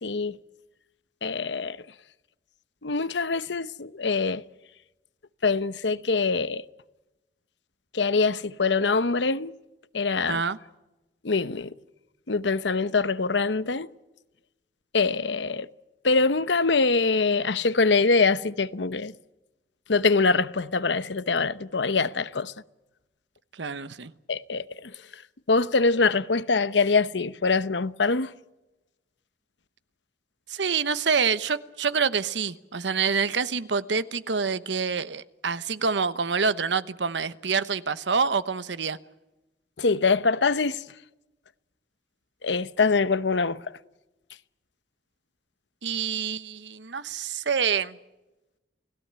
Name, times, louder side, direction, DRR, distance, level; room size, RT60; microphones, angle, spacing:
voice 1, 0.0-0.4 1.2-1.8 2.8-4.4 5.4-6.6 7.9-9.5 9.9-10.4 11.2-11.7 12.3-13.9 14.9-15.7 16.0-19.1 19.9-22.5 24.3-25.2 25.5-28.3 39.8-40.8 42.4-43.6, left 4 dB, 85° left, 0.9 m, -24 dB
voice 2, 10.3-10.6 23.5-24.1 30.5-39.0 45.8-48.0, right 5 dB, 90° right, 1.0 m, -27 dB
29.5 x 17.0 x 8.7 m
head